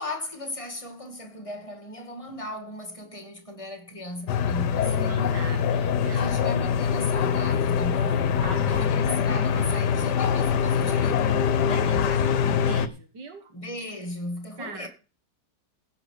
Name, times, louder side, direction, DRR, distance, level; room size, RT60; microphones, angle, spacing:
voice 1, 0.0-5.2 6.0-8.4 8.7-11.4 13.5-14.9, left 1 dB, 20° left, 2.0 m, -36 dB
sound 1, 4.3-12.9, left 7 dB, 70° left, 1.4 m, -24 dB
voice 2, 4.8-6.3 8.4-9.3 11.6-13.5 14.6-14.9, right 3 dB, 75° right, 2.2 m, -39 dB
15.5 x 5.9 x 6.6 m
omnidirectional pair, 1.9 m